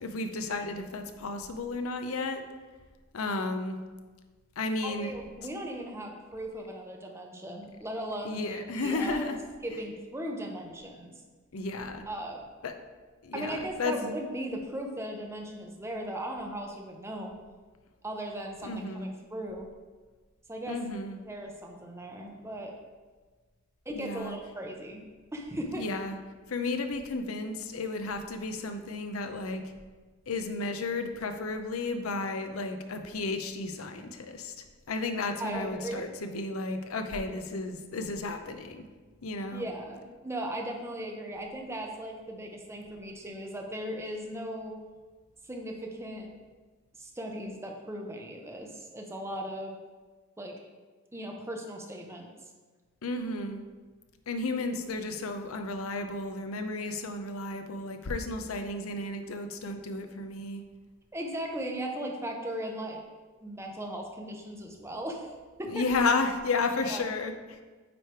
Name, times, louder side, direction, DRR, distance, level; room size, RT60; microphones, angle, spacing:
voice 1, 0.0-2.4 3.1-3.8 4.6-5.1 8.2-9.4 11.5-12.0 12.6-12.7 13.2-14.0 18.6-19.1 20.7-21.2 23.9-24.4 25.8-26.2 26.5-29.6 30.3-38.8 39.2-39.6 53.0-53.6 54.3-60.6 65.7-67.6, left 3 dB, 90° left, 7 dB, 0.7 m, -33 dB
voice 2, 4.8-9.2 9.6-11.1 12.1-12.5 13.3-17.3 18.0-19.7 20.5-20.8 21.3-22.7 23.9-25.0 25.3-25.8 35.4-36.1 39.5-44.8 45.5-46.3 47.0-49.8 50.4-50.6 51.1-52.3 61.1-63.0 63.4-65.3 65.6-65.8 66.7-67.1, right 1 dB, 15° right, 1 dB, 0.7 m, -37 dB
9.1 x 3.3 x 4.5 m, 1.4 s
head